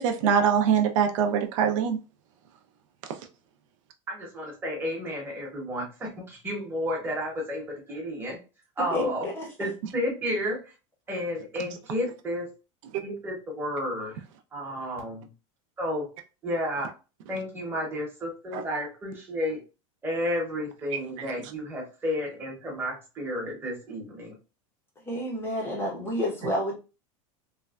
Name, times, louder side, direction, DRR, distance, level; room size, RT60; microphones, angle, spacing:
voice 1, 0.0-2.0 18.5-18.6 20.9-21.0, right 7 dB, 65° right, 0.5 m, -23 dB
voice 2, 4.1-8.4 8.8-9.3 9.6-10.6 11.1-12.5 13.0-14.1 14.5-15.3 15.8-16.1 16.4-16.9 17.3-19.6 20.0-24.3, equal, 10° right, 0.9 m, -32 dB
voice 3, 8.8-9.5 25.0-26.7, left 1 dB, 15° left, 0.6 m, -29 dB
3.1 x 2.1 x 2.3 m
supercardioid pair, 160°, 17 cm